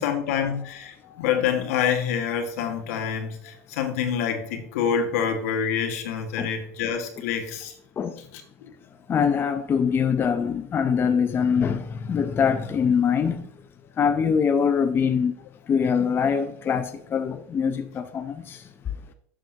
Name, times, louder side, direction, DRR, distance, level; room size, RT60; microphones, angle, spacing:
voice 1, 0.0-7.8 8.3-8.7, left 7 dB, 75° left, 1.9 m, -27 dB
voice 2, 9.1-13.5 14.0-15.3 15.7-18.7, left 6 dB, 25° left, 0.7 m, -23 dB
11.5 x 7.3 x 2.9 m
supercardioid pair, 115°, 8 cm